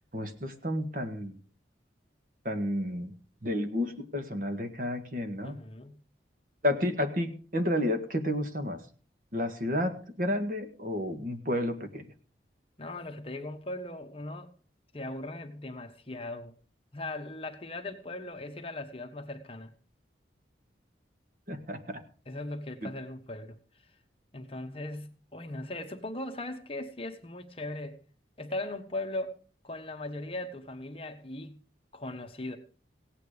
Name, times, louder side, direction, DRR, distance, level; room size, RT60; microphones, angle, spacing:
voice 1, 0.1-1.4 2.5-3.1 3.4-5.6 6.6-8.8 9.3-12.1 21.5-22.0 22.8-22.9, left 1 dB, 50° right, 1.8 m, -31 dB
voice 2, 5.4-6.0 12.8-14.5 14.9-16.5 16.9-19.7 22.3-23.6 24.3-28.0 28.4-29.3 29.6-31.6 31.9-32.6, left 2 dB, 30° left, 1.3 m, -38 dB
17.0 x 9.0 x 5.1 m
head